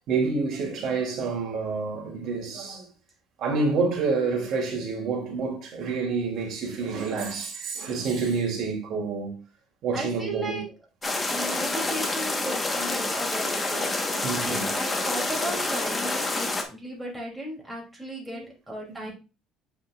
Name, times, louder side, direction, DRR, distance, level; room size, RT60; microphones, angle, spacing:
voice 1, 0.1-2.9 3.4-9.4 9.8-10.6 14.2-14.7 18.3-18.4 18.9-19.1, right 4 dB, 60° right, 2.7 m, -28 dB
voice 2, 9.9-10.8 11.3-19.1, right 1 dB, 5° right, 2.9 m, -36 dB
sound 1, 11.0-16.6, left 2 dB, 15° left, 1.2 m, -28 dB
8.9 x 5.1 x 2.4 m
cardioid pair, 115°, 0 cm